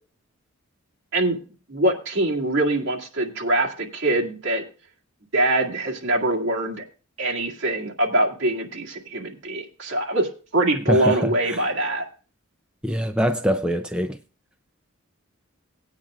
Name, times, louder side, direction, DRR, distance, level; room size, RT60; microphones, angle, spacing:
voice 1, 1.7-4.6 5.3-6.8 7.2-12.1, right 1 dB, 60° right, 2.1 m, -23 dB
voice 2, 10.9-11.6 12.8-14.2, equal, 5° right, 0.4 m, -24 dB
18.5 x 8.9 x 2.4 m
head